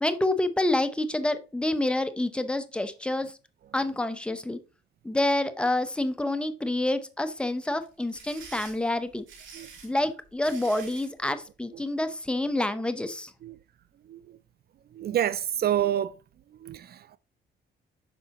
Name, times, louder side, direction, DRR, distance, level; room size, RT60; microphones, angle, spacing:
voice 1, 0.0-3.3 3.7-4.6 5.0-9.2 9.8-13.3, left 1 dB, 5° left, 0.8 m, -28 dB
sound 1, 7.8-11.1, right 5 dB, 75° right, 3.3 m, -46 dB
voice 2, 14.9-16.2 16.6-17.2, right 10 dB, 50° right, 0.4 m, -28 dB
8.3 x 5.5 x 2.9 m
cardioid pair, 90°, 20 cm